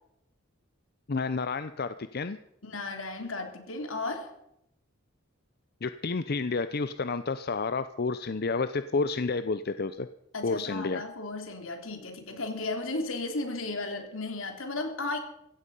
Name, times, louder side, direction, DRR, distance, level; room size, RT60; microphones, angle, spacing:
voice 1, 1.1-2.4 5.8-10.1 10.4-11.0, left 4 dB, 50° left, 12 dB, 0.6 m, -30 dB
voice 2, 2.6-4.3 10.3-15.2, left 2 dB, 80° left, 5 dB, 3.1 m, -34 dB
16.5 x 15.0 x 5.4 m, 0.80 s
head